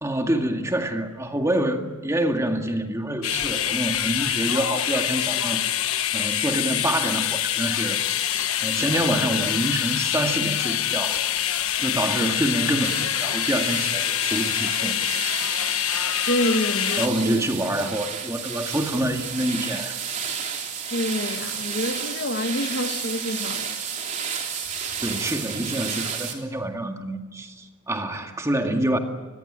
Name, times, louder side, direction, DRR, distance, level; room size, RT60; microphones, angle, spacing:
voice 1, 0.0-5.6 6.1-8.0 8.6-11.2 11.8-15.0 17.0-20.0 25.0-29.0, right 1 dB, 15° right, 2.0 m, -26 dB
sound 1, 3.2-17.1, left 11 dB, 75° left, 1.3 m, -25 dB
sound 2, 12.8-26.3, right 6 dB, 35° right, 3.5 m, -32 dB
voice 2, 16.3-17.4 20.9-23.7, left 1 dB, 50° left, 1.7 m, -27 dB
26.5 x 21.5 x 8.9 m
head